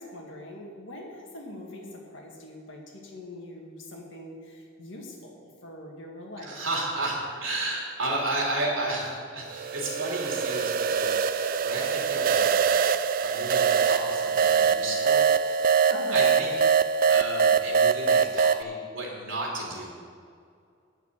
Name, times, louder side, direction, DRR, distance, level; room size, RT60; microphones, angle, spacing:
voice 1, 0.0-6.5 15.9-16.3, left 1 dB, 70° left, 0 dB, 2.0 m, -42 dB
voice 2, 6.4-12.6 13.2-15.7 16.1-16.5 17.1-19.9, right 2 dB, 85° right, -3 dB, 3.3 m, -33 dB
sound 1, 9.5-18.6, right 6 dB, 45° right, 0.4 m, -23 dB
9.4 x 7.0 x 7.5 m, 2.3 s
head